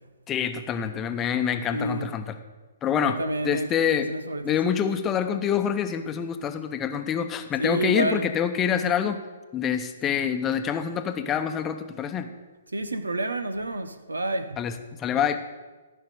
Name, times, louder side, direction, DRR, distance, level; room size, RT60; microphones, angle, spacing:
voice 1, 0.3-2.2 2.8-3.2 3.4-4.1 4.4-9.2 9.5-12.3 14.6-14.7 15.0-15.4, left 8 dB, 20° left, 0.9 m, -26 dB
voice 2, 1.7-2.1 3.0-4.6 7.6-8.3 12.7-14.6, right 2 dB, 85° right, 1.0 m, -29 dB
14.5 x 5.7 x 8.1 m
figure-of-eight pair, 125°, 0 cm